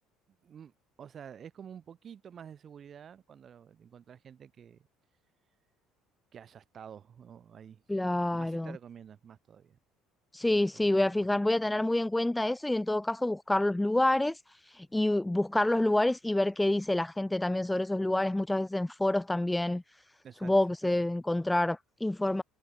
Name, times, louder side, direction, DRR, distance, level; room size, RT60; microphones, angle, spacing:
voice 1, 0.3-4.9 6.3-7.8 8.3-9.8 10.4-11.3 20.2-20.6 20.8-20.9, right 8 dB, 30° right, 6.8 m, -50 dB
voice 2, 7.9-8.7 10.3-19.8 20.4-22.4, left 1 dB, 5° left, 0.4 m, -28 dB
cardioid pair, 160°, 0 cm